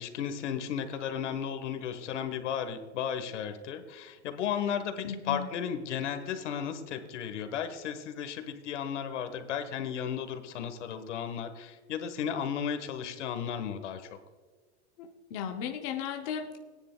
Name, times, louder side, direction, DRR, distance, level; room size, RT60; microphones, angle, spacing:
voice 1, 0.0-14.1, left 8 dB, 85° left, 8 dB, 1.4 m, -34 dB
voice 2, 5.0-5.5 15.0-16.6, left 7 dB, 25° left, 3 dB, 0.6 m, -36 dB
18.5 x 9.9 x 2.2 m, 1.5 s
supercardioid pair, 180°, 35 cm